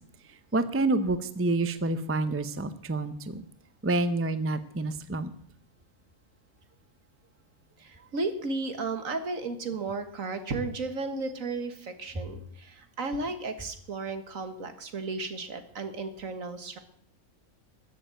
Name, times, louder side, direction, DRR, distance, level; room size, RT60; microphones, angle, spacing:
voice 1, 0.5-3.4 3.8-5.3, right 2 dB, 15° right, 12 dB, 0.4 m, -28 dB
voice 2, 7.8-16.8, right 3 dB, 65° right, 8 dB, 1.9 m, -34 dB
14.0 x 7.6 x 8.9 m, 0.64 s
omnidirectional pair, 1.5 m